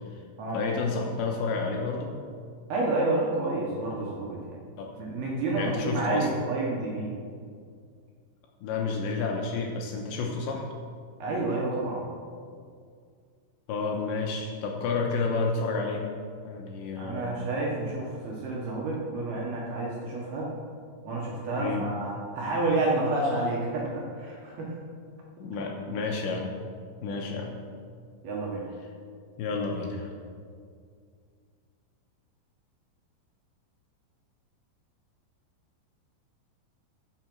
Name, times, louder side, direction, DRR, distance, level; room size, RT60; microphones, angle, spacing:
voice 1, 0.5-2.1 4.8-4.9 5.6-6.3 8.6-10.6 13.7-16.1 16.4-17.3 21.6-21.9 25.4-26.5 27.0-27.5 29.4-30.1, left 4 dB, 75° left, 0 dB, 3.0 m, -30 dB
voice 2, 2.7-4.6 5.0-7.2 11.2-12.1 17.0-20.5 21.0-24.7 28.2-28.7, right 2 dB, 65° right, -3 dB, 2.8 m, -29 dB
14.5 x 7.2 x 6.2 m, 2.2 s
omnidirectional pair, 5.9 m